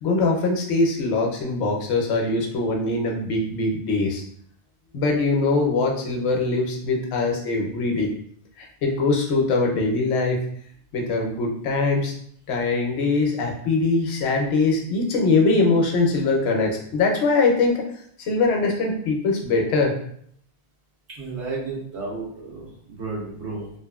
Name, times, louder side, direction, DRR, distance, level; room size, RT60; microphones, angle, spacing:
voice 1, 0.0-4.2 4.9-8.1 8.6-10.4 10.9-12.1 12.5-17.9 18.2-19.9, left 3 dB, 75° left, 0 dB, 0.9 m, -22 dB
voice 2, 21.1-23.7, right 3 dB, 85° right, -5 dB, 1.3 m, -32 dB
2.9 x 2.4 x 2.3 m, 0.64 s
omnidirectional pair, 1.1 m